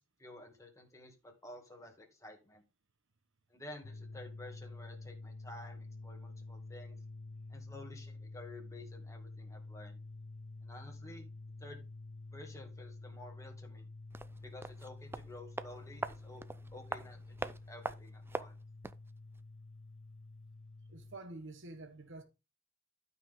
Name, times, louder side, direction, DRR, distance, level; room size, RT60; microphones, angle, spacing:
voice 1, 0.0-2.6 3.5-7.0 7.5-10.0 10.6-11.3 11.6-11.8 12.3-13.9 14.4-16.4 16.7-18.5, left 1 dB, 15° left, 2.1 m, -52 dB
sound 1, 3.8-21.2, left 2 dB, 85° left, 0.6 m, -49 dB
sound 2, 14.1-19.1 19.3-19.4, right 2 dB, 10° right, 0.4 m, -43 dB
voice 2, 20.9-22.2, right 2 dB, 65° right, 1.2 m, -48 dB
12.0 x 5.5 x 3.8 m
head